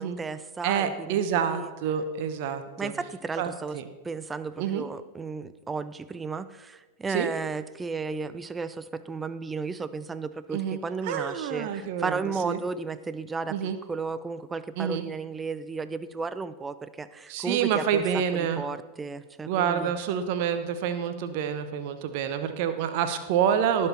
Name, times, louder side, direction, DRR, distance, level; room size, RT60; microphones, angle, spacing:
voice 1, 0.0-1.7 2.8-3.8 4.0-19.9, right 4 dB, 15° right, 14 dB, 0.5 m, -34 dB
voice 2, 0.6-2.9 3.4-3.8 4.6-4.8 7.1-7.3 10.5-12.6 13.5-13.8 14.8-15.1 17.3-18.6 19.5-23.9, right 8 dB, 45° right, 9 dB, 1.0 m, -28 dB
18.5 x 6.6 x 4.3 m, 1.2 s
figure-of-eight pair, 90°, 0 cm